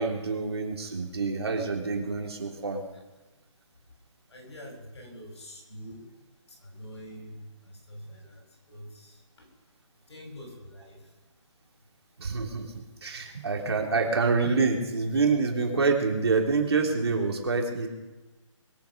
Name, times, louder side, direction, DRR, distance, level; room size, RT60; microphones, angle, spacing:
voice 1, 0.0-2.8 12.2-12.7 13.0-17.9, right 4 dB, 50° right, 1 dB, 3.5 m, -26 dB
voice 2, 4.3-6.1 6.6-7.5 7.9-9.5 10.1-11.0, equal, 60° left, 1 dB, 7.7 m, -45 dB
22.5 x 9.4 x 6.6 m, 1.1 s
hypercardioid pair, 180°, 16 cm